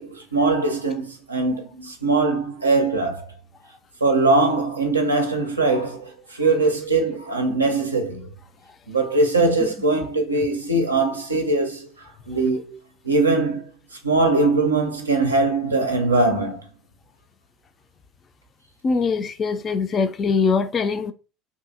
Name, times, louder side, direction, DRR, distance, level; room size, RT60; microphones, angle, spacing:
voice 1, 0.0-3.3 4.0-8.3 8.9-11.9 12.3-12.8 13.0-13.7 14.0-16.6, right 3 dB, 85° right, 0.4 m, -21 dB
voice 2, 18.8-21.1, left 5 dB, 35° left, 0.3 m, -22 dB
2.7 x 2.5 x 2.5 m
figure-of-eight pair, 70°, 0 cm